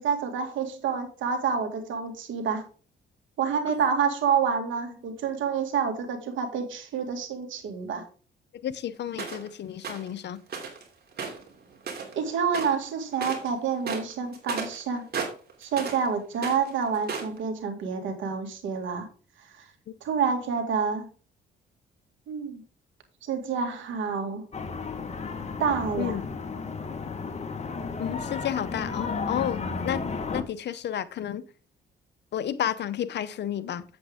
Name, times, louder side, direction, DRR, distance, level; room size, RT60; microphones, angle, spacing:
voice 1, 0.0-2.7 3.4-8.0 12.1-15.1 15.6-19.1 19.6-19.7 20.0-21.1 22.3-22.6 23.2-24.4 25.6-26.2, right 6 dB, 75° right, 2.1 m, -28 dB
voice 2, 8.6-10.4 26.0-26.2 28.0-30.0 30.3-31.4 32.3-33.8, left 10 dB, 60° left, 0.7 m, -31 dB
sound 1, 9.2-9.5 9.8-10.1 10.5-10.8 11.1-12.2 12.5-12.8 13.1-13.5 13.8-16.1 16.3-17.4, right 5 dB, 55° right, 2.8 m, -34 dB
sound 2, 24.5-30.4, left 4 dB, 35° left, 1.4 m, -33 dB
7.9 x 7.8 x 3.6 m
cardioid pair, 90°, 20 cm